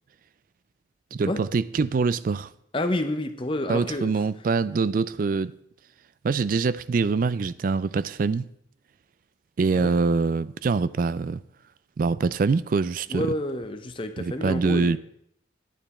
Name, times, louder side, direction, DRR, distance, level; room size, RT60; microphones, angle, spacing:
voice 1, 1.1-2.5 3.7-5.5 6.2-8.5 9.6-11.4 12.0-13.3 14.2-15.0, right 4 dB, 45° right, 0.3 m, -24 dB
voice 2, 2.7-4.1 9.7-9.9 13.1-15.0, left 1 dB, 30° left, 0.7 m, -29 dB
9.2 x 8.8 x 4.3 m
head